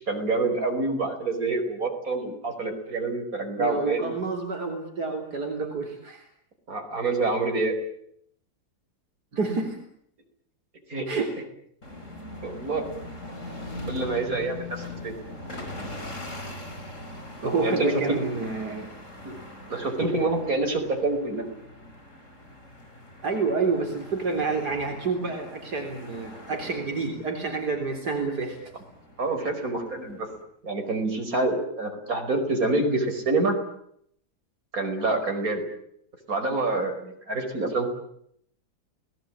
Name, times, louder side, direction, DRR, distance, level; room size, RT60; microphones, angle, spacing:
voice 1, 0.0-4.1 6.7-7.7 10.9-11.1 12.4-12.8 13.9-15.2 17.6-18.2 19.2-19.3 19.7-21.4 29.2-30.3 30.6-33.6 34.7-35.6 36.3-37.9, right 2 dB, 60° right, 3 dB, 5.6 m, -27 dB
voice 2, 3.6-6.3 9.3-9.8 11.1-11.3 17.4-18.9 23.2-28.6, right 4 dB, 80° right, 3 dB, 4.2 m, -28 dB
sound 1, 11.8-30.4, left 1 dB, 50° left, 5.1 m, -41 dB
29.5 x 19.5 x 8.8 m, 0.70 s
omnidirectional pair, 1.7 m